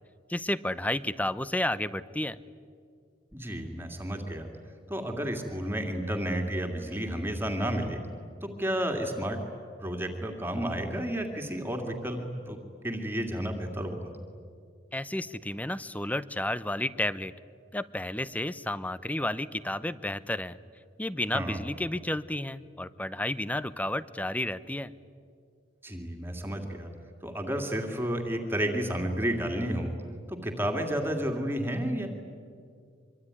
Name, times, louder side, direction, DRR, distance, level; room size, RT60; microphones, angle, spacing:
voice 1, 0.3-2.4 14.9-17.3 17.7-20.6 21.0-24.9, left 1 dB, 10° left, 16 dB, 0.7 m, -31 dB
voice 2, 3.3-4.5 4.9-8.0 8.4-9.4 9.8-14.1 21.3-21.6 25.8-26.9 27.2-30.0 30.3-32.1, equal, 10° right, 2 dB, 2.4 m, -31 dB
25.0 x 24.5 x 9.8 m, 2.3 s
head